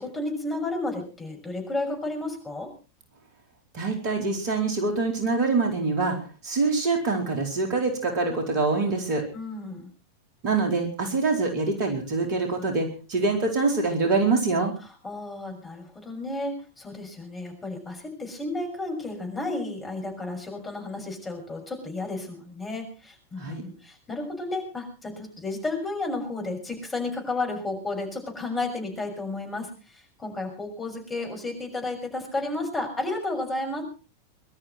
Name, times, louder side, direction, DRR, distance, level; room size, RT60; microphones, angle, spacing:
voice 1, 0.0-2.7 9.3-9.9 14.8-33.8, left 2 dB, 15° left, 2 dB, 6.4 m, -32 dB
voice 2, 3.7-6.2 6.4-9.2 10.4-14.7 23.4-23.6, right 3 dB, 45° right, 3 dB, 4.3 m, -25 dB
23.0 x 13.0 x 4.5 m, 0.35 s
figure-of-eight pair, 90°, 0 cm